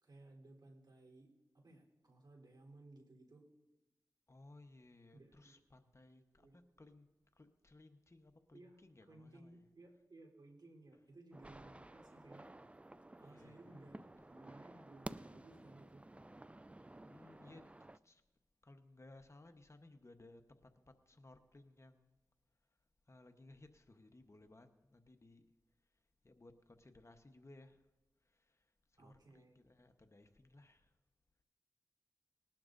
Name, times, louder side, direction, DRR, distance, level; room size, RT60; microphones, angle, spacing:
voice 1, 0.0-1.3 1.5-3.4 5.1-5.6 6.4-6.6 8.5-8.8 9.1-12.5 13.2-14.0 14.3-16.0 29.0-29.6, right 2 dB, 65° right, 0 dB, 3.5 m, -59 dB
voice 2, 4.3-7.1 7.3-9.7 13.2-14.3 17.1-18.2 18.6-22.2 23.1-25.5 26.2-27.9 28.2-30.9, left 2 dB, 40° left, 7 dB, 1.0 m, -61 dB
sound 1, 11.3-18.0, right 1 dB, 15° right, 0.4 m, -53 dB
20.0 x 11.5 x 2.6 m, 1.1 s
cardioid pair, 40°, 8 cm